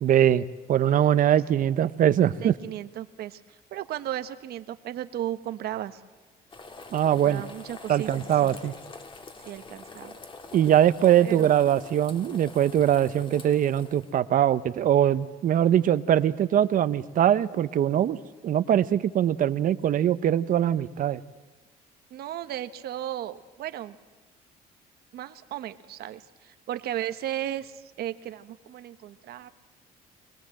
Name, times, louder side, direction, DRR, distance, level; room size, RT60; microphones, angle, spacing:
voice 1, 0.0-2.5 6.9-7.4 7.9-8.7 10.5-18.2 18.4-21.2, right 10 dB, 55° right, 14 dB, 0.8 m, -22 dB
voice 2, 2.4-6.0 7.2-8.6 9.4-10.2 11.2-11.5 22.1-24.0 25.1-29.5, right 12 dB, 70° right, 11 dB, 1.1 m, -35 dB
sound 1, 6.5-14.2, left 3 dB, 30° left, 1.8 m, -45 dB
25.0 x 19.5 x 7.7 m, 1.2 s
cardioid pair, 110°, 17 cm